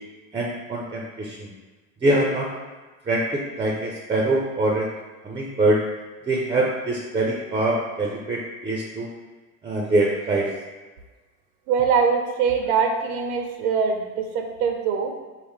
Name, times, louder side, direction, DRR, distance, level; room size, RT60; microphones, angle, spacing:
voice 1, 0.3-1.5 2.0-2.5 3.1-4.9 5.2-5.8 6.3-9.1 9.6-10.5, right 2 dB, 15° right, -1 dB, 0.4 m, -24 dB
voice 2, 11.7-15.1, right 6 dB, 90° right, 4 dB, 0.7 m, -23 dB
4.7 x 2.0 x 3.5 m, 1.3 s
supercardioid pair, 105°, 43 cm